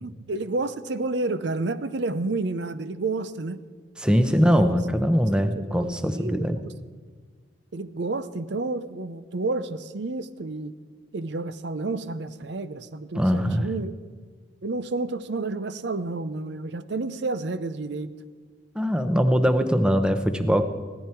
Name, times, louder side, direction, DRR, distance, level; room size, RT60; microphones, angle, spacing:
voice 1, 0.0-3.6 4.3-4.7 5.6-6.7 7.7-10.8 11.1-13.9 14.6-18.1, right 3 dB, 60° right, 14 dB, 0.6 m, -30 dB
voice 2, 4.0-6.6 13.1-13.7 18.7-20.6, equal, 5° right, 8 dB, 0.7 m, -22 dB
17.0 x 14.0 x 4.5 m, 1.5 s
head